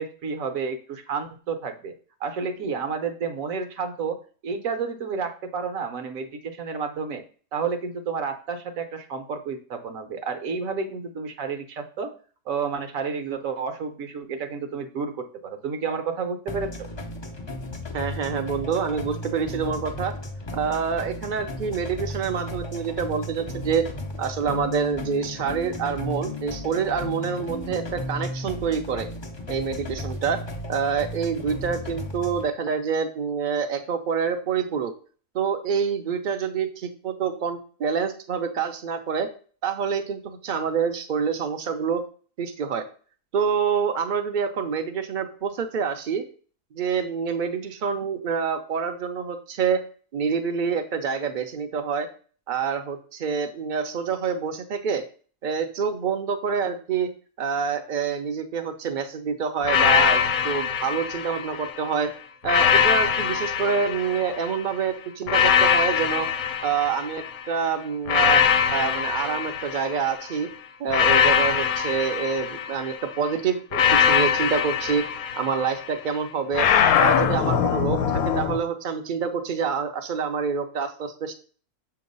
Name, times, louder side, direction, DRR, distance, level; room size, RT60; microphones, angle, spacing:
voice 1, 0.0-1.9 2.2-4.2 4.4-7.2 7.5-12.1 12.5-16.9, right 5 dB, 65° right, 8 dB, 1.1 m, -30 dB
sound 1, 16.5-32.5, left 1 dB, 35° left, 0.4 m, -35 dB
voice 2, 17.9-20.1 20.5-23.9 24.2-29.1 29.5-30.4 30.7-34.9 35.3-39.3 39.6-42.0 42.4-42.8 43.3-46.2 46.7-49.8 50.1-52.1 52.5-55.0 55.4-57.1 57.4-62.1 62.4-66.3 66.6-68.4 68.7-70.5 70.8-75.0 75.4-76.7 77.0-81.3, right 6 dB, 50° right, 7 dB, 0.6 m, -27 dB
sound 2, 59.6-61.8 62.4-64.6 65.3-67.4 68.1-70.2 70.9-73.0 73.7-75.9 76.5-78.6, left 8 dB, 70° left, 1.0 m, -22 dB
6.8 x 2.9 x 5.3 m, 0.42 s
omnidirectional pair, 1.6 m